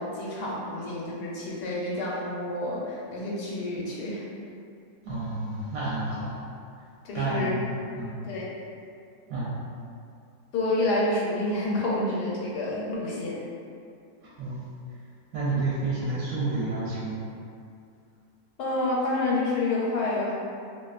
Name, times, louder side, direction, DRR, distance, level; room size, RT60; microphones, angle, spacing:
voice 1, 0.0-4.2 7.0-7.5 8.2-8.6 10.5-13.4 18.6-20.4, left 2 dB, 85° left, -5 dB, 1.2 m, -28 dB
voice 2, 5.0-6.4 7.1-8.2 9.3-9.6 14.2-14.6 15.3-17.3, right 2 dB, 70° right, -8 dB, 0.9 m, -30 dB
2.5 x 2.4 x 2.3 m, 2.4 s
omnidirectional pair, 1.7 m